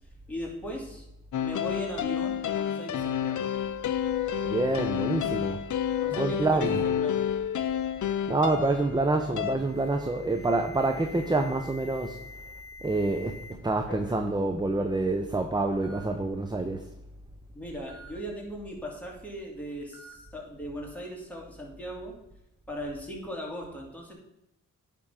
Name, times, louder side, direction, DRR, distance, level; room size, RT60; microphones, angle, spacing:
voice 1, 0.3-1.1 1.4-3.5 6.0-7.2 17.5-22.1 22.7-24.1, equal, 5° left, -2 dB, 2.4 m, -38 dB
sound 1, 1.3-9.6, left 9 dB, 65° left, 0.6 m, -30 dB
voice 2, 4.5-5.6 6.1-6.8 8.3-12.2 12.8-16.8, right 2 dB, 15° right, 5 dB, 0.6 m, -27 dB
Alarm, 9.6-13.5 13.9-14.3 15.1-15.2 15.8-16.0 17.9-18.1 19.9-20.1, left 3 dB, 40° left, 1.6 m, -47 dB
9.9 x 3.7 x 5.6 m, 0.87 s
cardioid pair, 80°, 32 cm